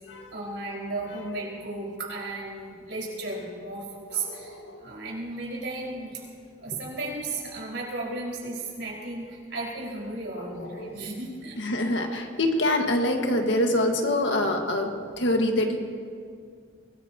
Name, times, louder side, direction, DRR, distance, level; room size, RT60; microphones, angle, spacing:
voice 1, 0.3-4.5 4.8-6.2 6.6-11.6, right 2 dB, 75° right, -4 dB, 5.1 m, -34 dB
voice 2, 4.2-4.8 10.4-11.0 11.6-15.8, left 1 dB, 70° left, 3 dB, 1.7 m, -26 dB
23.5 x 19.5 x 2.9 m, 2.2 s
head